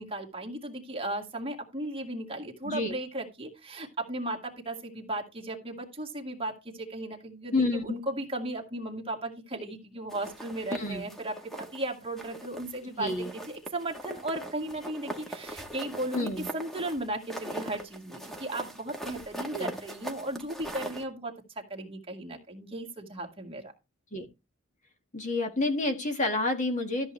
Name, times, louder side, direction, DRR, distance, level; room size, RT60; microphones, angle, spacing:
voice 1, 0.0-23.7, right 1 dB, 25° right, 1 dB, 1.9 m, -36 dB
voice 2, 2.6-3.0 7.5-7.8 10.7-11.1 13.0-13.3 16.1-16.5 19.5-19.7 24.1-24.2 25.1-27.1, left 2 dB, 35° left, 5 dB, 1.6 m, -29 dB
sound 1, 10.1-11.8 12.2-12.8 13.1-21.0, right 1 dB, ahead, 1.2 m, -41 dB
13.5 x 7.2 x 3.2 m, 0.25 s
head